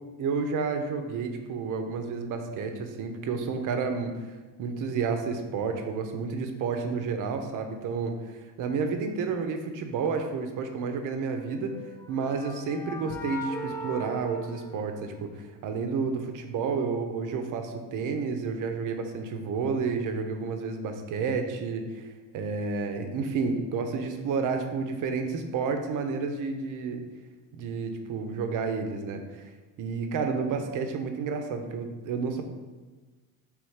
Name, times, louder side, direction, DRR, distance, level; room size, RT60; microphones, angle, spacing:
voice 1, 0.2-4.2 4.6-11.7 12.1-15.3 15.6-22.0 22.3-27.1 27.5-29.5 29.8-32.4, right 5 dB, 55° right, 6 dB, 0.7 m, -30 dB
sound 1, 11.6-15.5, equal, 5° left, 0.4 m, -39 dB
3.4 x 3.2 x 4.8 m, 1.3 s
supercardioid pair, 90°, 37 cm